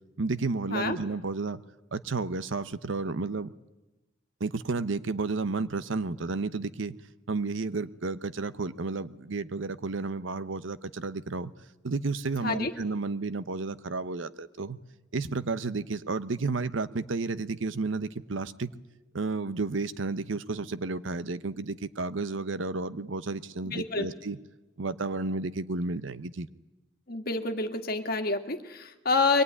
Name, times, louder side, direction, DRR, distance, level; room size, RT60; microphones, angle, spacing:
voice 1, 0.2-1.6 1.9-3.5 4.4-7.0 7.3-11.5 11.8-14.8 15.1-18.7 19.1-24.4 24.8-26.5, right 3 dB, 75° right, 15 dB, 0.8 m, -32 dB
voice 2, 23.7-24.1 27.1-29.4, left 3 dB, 50° left, 6 dB, 1.8 m, -28 dB
23.0 x 18.5 x 9.7 m, 1.1 s
head